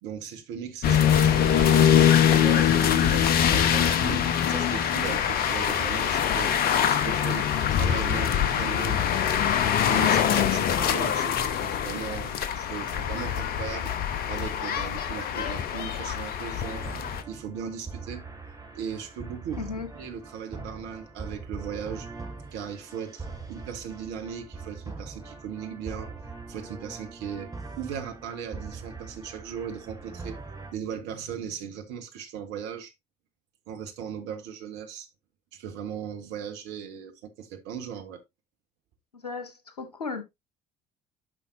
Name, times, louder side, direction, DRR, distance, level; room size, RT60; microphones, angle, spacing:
voice 1, 0.0-6.5 6.9-9.1 9.9-13.9 14.3-16.9 17.3-18.3 18.7-22.1 22.5-26.1 26.5-30.4 30.7-32.9 33.7-35.1 35.5-38.2, right 8 dB, 60° right, 1.7 m, -38 dB
sound 1, 0.8-17.2, left 9 dB, 50° left, 1.1 m, -23 dB
voice 2, 0.9-1.2 19.6-19.9 39.1-40.2, left 4 dB, 85° left, 1.3 m, -35 dB
sound 2, 16.6-30.7, right 4 dB, 20° right, 2.5 m, -41 dB
11.5 x 5.6 x 2.8 m
figure-of-eight pair, 55°, 20 cm